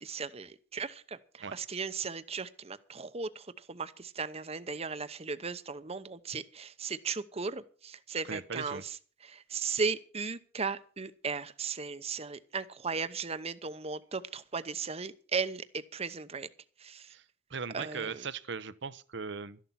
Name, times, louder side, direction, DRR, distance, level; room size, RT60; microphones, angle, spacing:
voice 1, 0.0-9.0 9.2-16.5 16.8-17.1 17.7-18.2, right 5 dB, 35° right, 0.8 m, -36 dB
voice 2, 8.2-8.8 17.1-17.2 17.5-19.6, right 5 dB, 70° right, 0.9 m, -38 dB
13.5 x 11.0 x 5.8 m
head